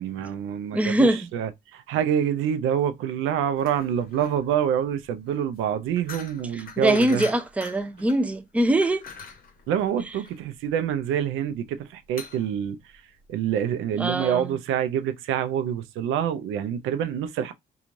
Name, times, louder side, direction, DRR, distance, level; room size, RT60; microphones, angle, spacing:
voice 1, 0.0-1.1 1.3-7.2 9.7-12.8 13.3-17.5, right 9 dB, 85° right, 0.4 m, -26 dB
voice 2, 0.7-1.3 6.5-9.1 10.0-10.2 14.0-14.6, right 1 dB, 5° right, 0.4 m, -23 dB
sound 1, 3.6-13.5, left 5 dB, 45° left, 0.7 m, -44 dB
3.0 x 2.3 x 2.5 m
cardioid pair, 90°, 20 cm